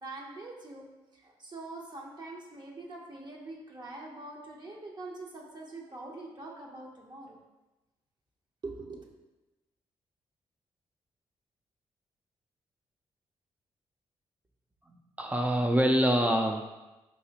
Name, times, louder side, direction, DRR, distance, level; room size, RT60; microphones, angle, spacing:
voice 1, 0.0-0.9 1.1-7.4 8.6-9.1, right 2 dB, 45° right, -1 dB, 0.8 m, -44 dB
voice 2, 14.9-16.6, equal, 15° right, 2 dB, 0.4 m, -26 dB
4.0 x 2.8 x 2.8 m, 1.1 s
supercardioid pair, 55°, 11 cm